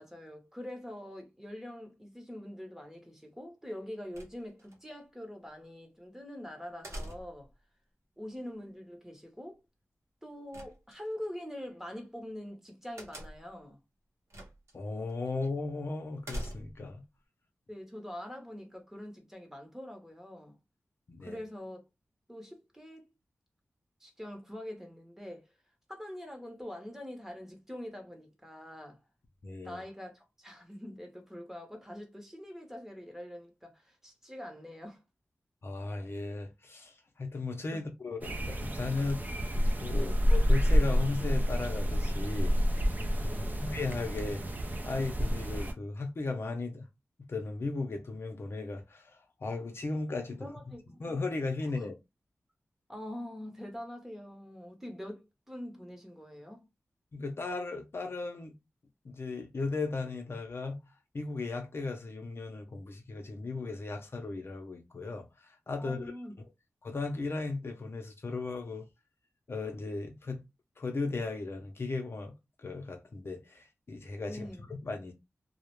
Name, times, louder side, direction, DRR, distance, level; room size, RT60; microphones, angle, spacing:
voice 1, 0.0-7.5 8.2-9.6 10.2-13.8 17.7-20.6 21.2-21.8 22.3-23.0 24.0-25.5 25.9-29.0 29.6-35.0 37.7-37.8 40.0-40.2 43.3-43.7 50.4-51.0 51.7-51.9 52.9-56.7 65.8-66.4 74.2-74.7, left 1 dB, 10° right, 0.8 m, -44 dB
sound 1, 4.1-4.8 6.8-7.5 10.5-11.3 13.0-13.6 14.3-14.7 15.1-15.2 16.2-16.9, equal, 75° right, 0.7 m, -43 dB
voice 2, 14.7-17.0 21.1-21.4 29.4-29.8 35.6-42.9 43.2-44.4 44.8-46.9 47.3-50.5 51.0-51.9 57.1-58.5 59.0-60.8 61.1-66.1 66.8-68.9 69.5-70.4 70.8-72.3 72.6-74.5 74.8-75.1, left 3 dB, 55° left, 0.5 m, -36 dB
sound 2, 38.2-45.7, equal, 35° right, 0.4 m, -29 dB
2.3 x 2.0 x 3.0 m
wide cardioid pair, 100°, 5 cm